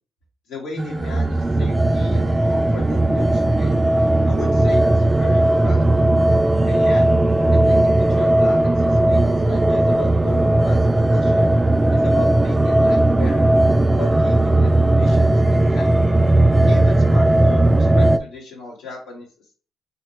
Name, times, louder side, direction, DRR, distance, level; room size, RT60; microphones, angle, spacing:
voice 1, 0.5-3.8 4.3-6.1 6.7-7.1 7.5-11.5 11.9-13.5 14.0-15.9 16.7-19.3, left 3 dB, 85° left, -2 dB, 2.1 m, -36 dB
sound 1, 0.8-18.2, right 1 dB, 15° right, 0.4 m, -17 dB
4.3 x 3.8 x 3.2 m, 0.41 s
cardioid pair, 90°, 0 cm